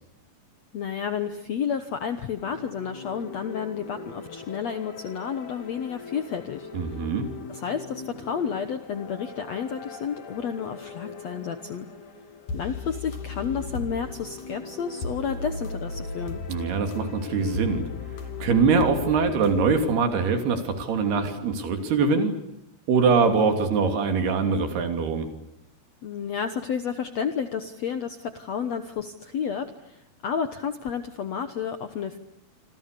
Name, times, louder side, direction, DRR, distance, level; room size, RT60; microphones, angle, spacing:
voice 1, 0.7-7.0 7.5-11.9 12.5-16.4 26.0-32.2, left 7 dB, 75° left, 9 dB, 1.5 m, -31 dB
sound 1, 2.4-19.8, left 4 dB, 50° left, 3.9 m, -38 dB
voice 2, 6.7-7.3 16.5-17.8 18.4-22.3 22.9-25.3, right 5 dB, 70° right, 6 dB, 5.0 m, -23 dB
27.0 x 26.5 x 6.8 m, 0.80 s
omnidirectional pair, 4.9 m